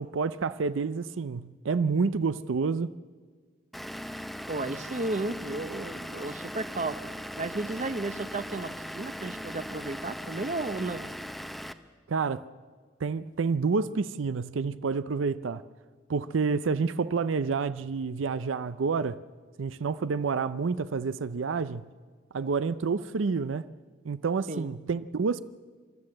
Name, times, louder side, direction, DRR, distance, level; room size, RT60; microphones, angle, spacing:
voice 1, 0.0-2.9 12.1-12.4 13.0-15.6 16.1-19.2 19.6-21.8 22.3-23.7 24.0-25.4, right 4 dB, 90° right, 0.5 m, -28 dB
Vehicle / Engine, 3.7-11.7, equal, ahead, 0.6 m, -39 dB
voice 2, 4.5-7.0 7.4-11.1 24.5-24.7, right 2 dB, 40° right, 0.7 m, -33 dB
28.0 x 12.5 x 7.8 m
head